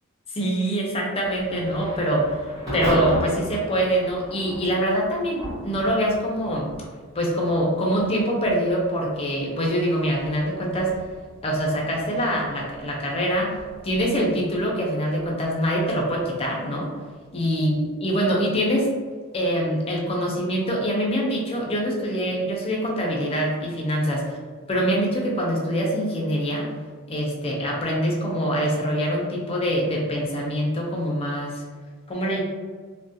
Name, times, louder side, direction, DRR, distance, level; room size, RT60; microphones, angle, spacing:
voice 1, 0.3-2.3 2.7-6.7 7.1-10.9 11.4-13.6 13.8-16.9 17.3-18.9 19.3-24.4 24.7-26.7 27.1-31.6 32.1-32.4, equal, 25° left, -2 dB, 0.4 m, -24 dB
Thunder / Rain, 1.2-17.9, equal, 15° right, 1.2 m, -38 dB
2.3 x 2.1 x 2.6 m, 1.5 s
head